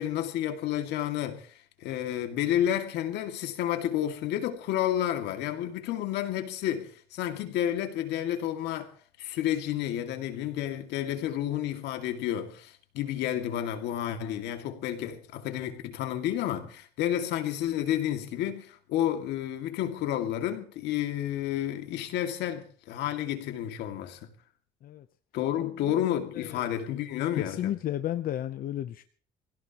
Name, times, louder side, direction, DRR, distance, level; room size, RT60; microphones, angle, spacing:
voice 1, 0.0-1.5 1.8-8.9 9.2-24.3 25.3-27.7, left 11 dB, 85° left, 2.3 m, -30 dB
voice 2, 25.6-26.7 27.4-29.0, left 12 dB, 55° left, 0.8 m, -34 dB
25.0 x 16.5 x 3.0 m
cardioid pair, 110°, 17 cm